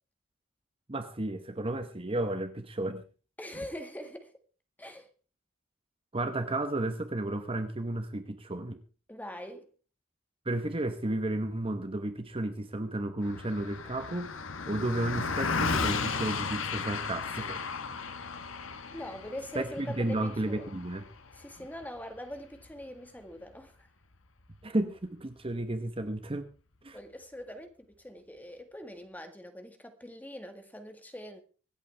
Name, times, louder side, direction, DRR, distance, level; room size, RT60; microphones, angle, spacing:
voice 1, 0.9-3.0 6.1-8.8 10.4-14.4 14.7-17.7 19.5-21.1 24.6-26.5 26.8-27.0, right 1 dB, 25° right, 1.1 m, -33 dB
voice 2, 3.4-4.3 4.8-5.1 9.1-9.7 18.9-20.7 21.3-23.9 26.9-31.4, left 1 dB, 10° left, 1.7 m, -43 dB
Car passing by, 13.2-22.8, left 4 dB, 70° left, 1.3 m, -35 dB
25.0 x 8.4 x 3.4 m
head